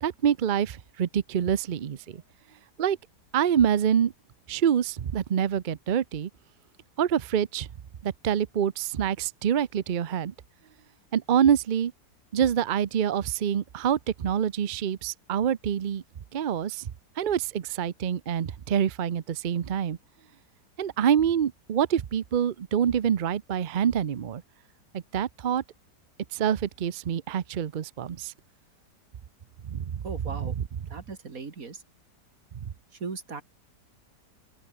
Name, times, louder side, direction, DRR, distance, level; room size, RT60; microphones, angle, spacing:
voice 1, 0.0-2.2 2.8-3.0 3.3-4.1 4.5-6.3 7.0-7.7 8.0-10.3 11.1-11.9 12.3-16.0 16.3-16.9 17.2-20.0 20.8-24.4 24.9-25.6 26.3-28.3 29.6-30.0 30.4-30.5 32.5-32.7, right 9 dB, 70° right, 0.4 m, -26 dB
voice 2, 30.0-30.5 30.9-31.8 33.0-33.4, right 4 dB, 55° right, 2.9 m, -37 dB
open air
omnidirectional pair, 1.8 m